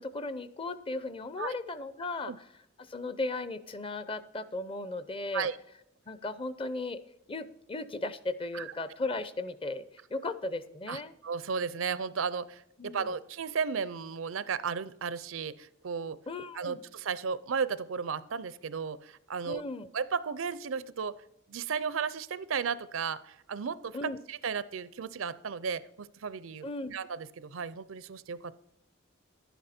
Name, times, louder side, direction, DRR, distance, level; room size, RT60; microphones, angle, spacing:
voice 1, 0.0-2.5 2.9-5.5 6.1-7.0 7.3-9.8 10.1-11.1 12.8-13.1 16.3-16.8 19.5-19.9 23.9-24.2 26.6-26.9, left 2 dB, 25° left, 14 dB, 0.6 m, -36 dB
voice 2, 10.9-16.2 16.5-19.6 19.9-21.2 21.5-28.5, right 6 dB, 85° right, 17 dB, 0.6 m, -34 dB
11.5 x 10.0 x 4.3 m, 0.79 s
head